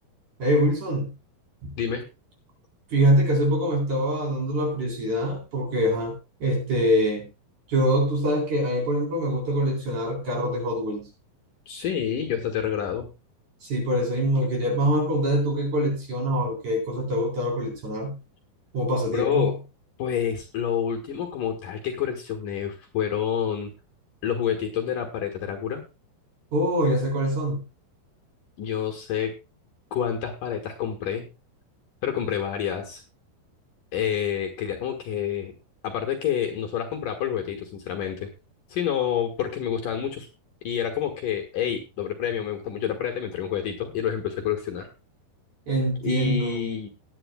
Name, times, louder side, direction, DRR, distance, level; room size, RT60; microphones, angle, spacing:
voice 1, 0.4-1.1 1.6-1.7 2.9-6.2 6.4-7.3 7.7-11.1 13.6-18.2 18.7-19.5 26.5-27.6 45.7-46.6, equal, 45° right, 0 dB, 5.2 m, -24 dB
voice 2, 1.8-2.1 11.7-13.1 19.1-19.6 20.0-23.7 24.2-25.8 28.6-29.3 29.9-31.3 32.0-33.0 33.9-35.5 35.8-38.3 38.7-40.3 40.6-44.9 46.0-46.9, left 9 dB, 65° left, 3 dB, 2.7 m, -28 dB
18.5 x 10.5 x 2.3 m, 0.27 s
omnidirectional pair, 4.8 m